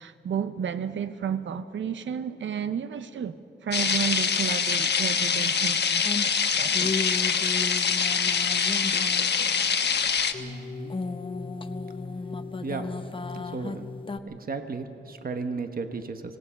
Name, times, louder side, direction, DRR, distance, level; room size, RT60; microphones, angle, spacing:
voice 1, 0.0-3.3 3.6-6.9, right 8 dB, 85° right, 0.6 m, -32 dB
sound 1, 3.7-10.3, left 6 dB, 65° left, 1.2 m, -24 dB
sound 2, 6.0-10.0 10.3-14.2, left 3 dB, 25° left, 0.8 m, -34 dB
voice 2, 10.4-10.9 12.4-12.9 13.3-13.9 14.3-16.4, right 4 dB, 50° right, 1.2 m, -35 dB
25.5 x 18.5 x 5.8 m
wide cardioid pair, 115°, 19 cm